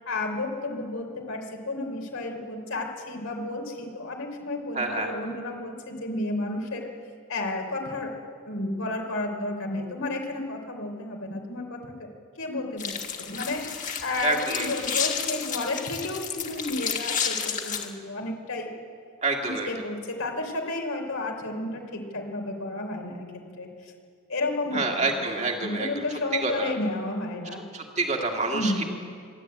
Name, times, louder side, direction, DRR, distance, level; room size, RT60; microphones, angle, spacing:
voice 1, 0.1-6.9 7.3-12.1 12.4-18.7 19.4-23.9 24.3-25.2 25.6-27.6 28.5-28.8, left 2 dB, 80° left, 2 dB, 3.8 m, -32 dB
voice 2, 4.8-5.1 14.2-14.7 19.2-19.7 24.7-26.0 26.3-26.7 27.7-28.8, right 3 dB, 30° right, 1 dB, 2.0 m, -27 dB
sound 1, 12.8-17.8, left 7 dB, 35° left, 1.8 m, -31 dB
26.0 x 12.0 x 8.8 m, 2.2 s
head